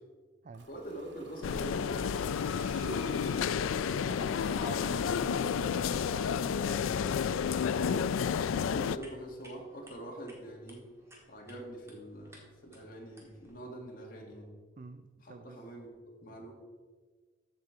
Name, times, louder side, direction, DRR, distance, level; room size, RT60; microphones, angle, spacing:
Ocean, 0.5-9.4, right 2 dB, 60° right, 1.0 m, -54 dB
voice 1, 0.7-3.9 7.7-8.1 8.4-10.9 11.3-14.5 15.2-15.9 16.2-16.6, right 1 dB, 45° left, 0 dB, 1.8 m, -44 dB
sound 1, 1.4-9.0, left 7 dB, 90° left, 0.3 m, -31 dB
voice 2, 4.0-7.5 14.8-15.6, right 3 dB, 40° right, 10 dB, 0.3 m, -47 dB
sound 2, 8.3-13.5, equal, 15° right, 1.6 m, -59 dB
14.0 x 5.3 x 4.6 m, 1.5 s
head